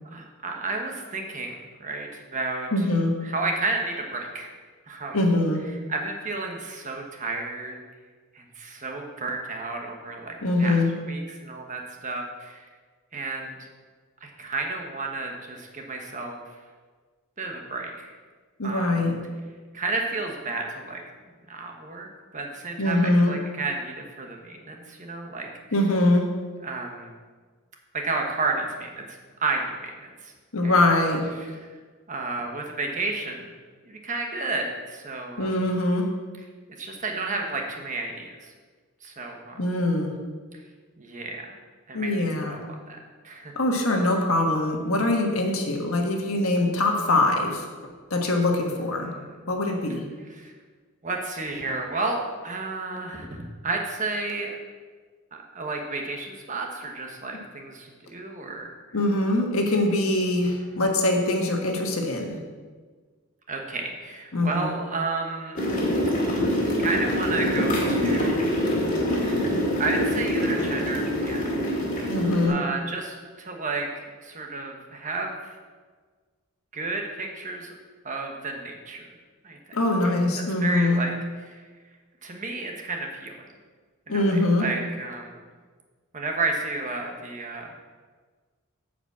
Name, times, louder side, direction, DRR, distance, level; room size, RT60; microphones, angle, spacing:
voice 1, 0.1-2.8 3.2-4.5 4.9-5.2 5.9-7.8 8.3-10.8 11.0-12.7 13.1-13.6 14.2-16.4 17.4-18.1 18.6-19.1 19.7-21.0 21.5-22.1 22.3-25.5 26.6-27.1 27.9-29.1 29.4-30.3 30.6-30.8 31.4-31.6 32.1-33.5 33.8-35.6 36.8-38.5 39.0-39.6 41.0-41.5 41.9-43.0 43.2-43.5 49.0-49.4 50.3-50.5 51.0-54.5 55.3-58.7 60.4-60.7 63.5-65.6 66.8-68.6 69.8-71.5 71.9-72.2 72.4-75.5 76.7-77.7 78.0-79.1 79.4-79.6 80.0-80.1 80.6-81.1 81.4-81.6 82.2-83.5 84.1-85.4 86.1-87.7, right 3 dB, 35° right, 2 dB, 1.2 m, -32 dB
voice 2, 2.7-3.1 5.1-5.6 10.4-10.9 18.6-19.2 22.8-23.3 25.7-26.3 30.5-31.3 35.4-36.0 39.6-40.1 41.9-42.6 43.5-47.6 48.1-49.1 49.5-50.0 58.9-62.4 64.3-64.7 72.1-72.6 79.7-81.0 84.1-84.7, left 2 dB, 70° left, 2 dB, 1.4 m, -23 dB
sound 1, 65.5-72.5, equal, 35° left, 2.0 m, -25 dB
8.7 x 5.1 x 7.3 m, 1.5 s
head